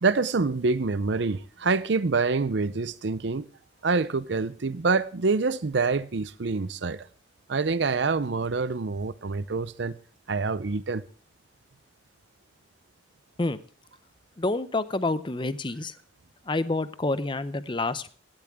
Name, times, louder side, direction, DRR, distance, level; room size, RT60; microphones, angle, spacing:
voice 1, 0.0-3.5 3.8-7.1 7.5-9.9 10.3-11.0, right 4 dB, 65° right, 0.6 m, -26 dB
voice 2, 14.4-15.9 16.5-18.1, left 2 dB, 25° left, 0.6 m, -28 dB
17.0 x 12.0 x 3.6 m
head